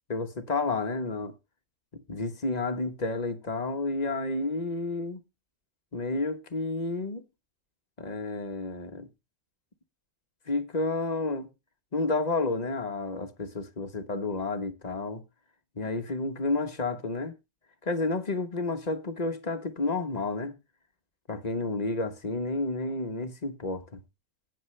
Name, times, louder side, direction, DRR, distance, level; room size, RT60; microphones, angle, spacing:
voice 1, 0.1-1.3 1.9-5.2 5.9-7.2 8.0-9.1 10.5-11.5 11.9-15.2 15.8-17.3 17.8-20.6 21.3-24.0, left 3 dB, 30° left, 1.0 m, -31 dB
18.0 x 6.6 x 3.2 m
omnidirectional pair, 1.6 m